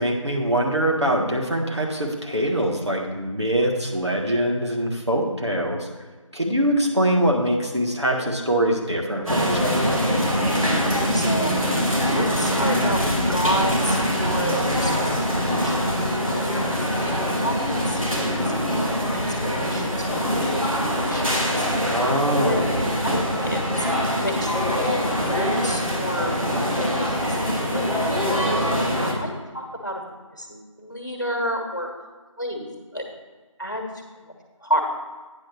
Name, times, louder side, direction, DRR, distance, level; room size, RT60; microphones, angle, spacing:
voice 1, 0.0-5.9 6.3-10.0 21.8-22.8, right 1 dB, 55° right, 0 dB, 1.5 m, -23 dB
sound 1, 9.3-29.1, equal, 90° right, 2.5 m, -23 dB
voice 2, 11.1-11.6 11.9-13.0 13.3-20.0 20.4-20.6 21.0-21.4 22.4-22.7 23.0-23.9 24.2-28.2 29.0-30.0 30.3-31.9 32.4-32.7 32.9-33.1 33.6-33.9 34.2-34.3 34.6-34.8, equal, 35° left, 2 dB, 1.4 m, -30 dB
8.9 x 5.9 x 5.8 m, 1.3 s
figure-of-eight pair, 180°, 17 cm